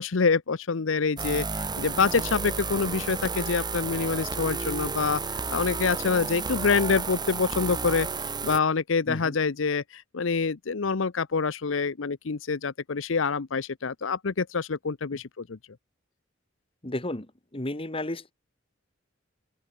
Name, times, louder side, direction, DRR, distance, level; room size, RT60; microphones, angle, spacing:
voice 1, 0.0-8.1 8.4-15.6, left 5 dB, 75° left, 0.7 m, -26 dB
sound 1, 1.2-8.6, right 4 dB, 20° right, 1.5 m, -32 dB
voice 2, 16.8-17.3 17.5-18.3, left 1 dB, 30° left, 1.9 m, -32 dB
open air
head